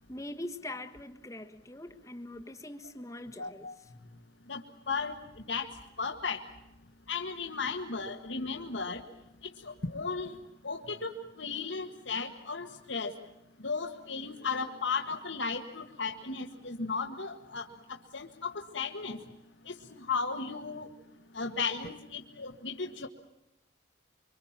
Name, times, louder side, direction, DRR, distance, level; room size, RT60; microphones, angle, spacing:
voice 1, 0.1-3.7, left 1 dB, 15° left, 1.4 m, -42 dB
voice 2, 3.4-3.7 4.5-4.6 4.9-5.1 5.5-5.7 6.0-6.4 7.1-9.0 9.6-10.4 10.6-13.1 13.6-17.7 18.1-19.2 19.7-20.9 21.3-23.1, left 4 dB, 75° left, 1.8 m, -35 dB
25.0 x 25.0 x 7.4 m
head